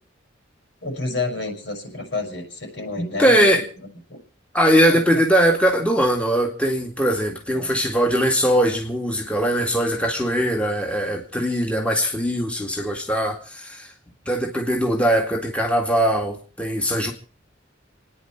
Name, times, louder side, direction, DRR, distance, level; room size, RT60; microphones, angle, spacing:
voice 1, 0.8-3.6 4.1-4.2 4.9-5.0 7.5-7.8, left 3 dB, 70° left, 3 dB, 6.0 m, -29 dB
voice 2, 3.0-3.6 4.5-13.9 14.3-17.1, equal, 5° left, 1 dB, 2.0 m, -21 dB
29.5 x 9.9 x 4.5 m, 0.39 s
head